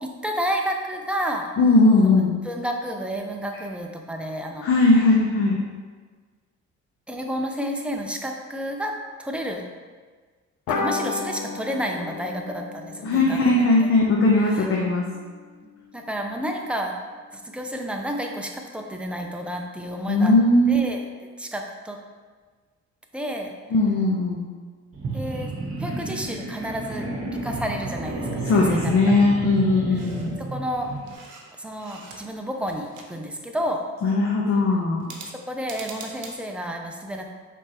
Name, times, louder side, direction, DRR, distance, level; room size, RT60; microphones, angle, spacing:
voice 1, 0.0-1.5 2.1-2.2 2.4-4.7 7.1-8.9 9.2-9.6 10.7-13.6 14.5-14.7 15.9-16.9 17.3-20.3 20.7-21.1 21.4-22.0 23.1-23.5 25.1-25.5 25.8-27.1 27.4-29.0 30.4-30.9 31.6-33.8 35.3-37.3, equal, 5° right, 2 dB, 0.5 m, -30 dB
voice 2, 1.6-2.4 4.6-5.6 13.0-15.0 20.1-20.8 23.7-24.5 28.4-30.3 34.0-35.1, left 2 dB, 45° left, -2 dB, 0.7 m, -19 dB
sound 1, 10.7-15.6, left 4 dB, 85° left, 0.6 m, -33 dB
sound 2, 24.9-31.1, right 2 dB, 50° right, 1.0 m, -32 dB
sound 3, 29.9-30.3 30.7-32.4 32.7-33.6 35.0-36.3, right 4 dB, 80° right, 0.8 m, -43 dB
4.8 x 3.4 x 3.0 m, 1.5 s
cardioid pair, 90°, 30 cm